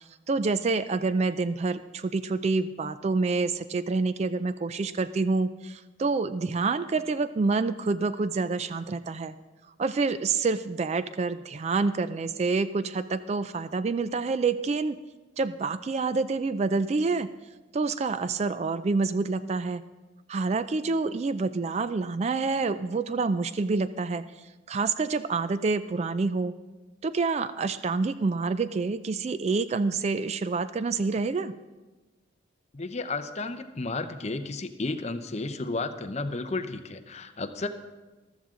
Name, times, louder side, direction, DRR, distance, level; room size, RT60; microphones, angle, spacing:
voice 1, 0.3-9.3 9.8-15.0 15.4-17.3 17.7-19.8 20.3-24.2 24.7-26.5 27.0-31.5, right 4 dB, 35° right, 13 dB, 0.3 m, -27 dB
voice 2, 32.7-37.7, left 3 dB, 35° left, 8 dB, 0.7 m, -33 dB
14.0 x 13.0 x 3.7 m, 1.2 s
head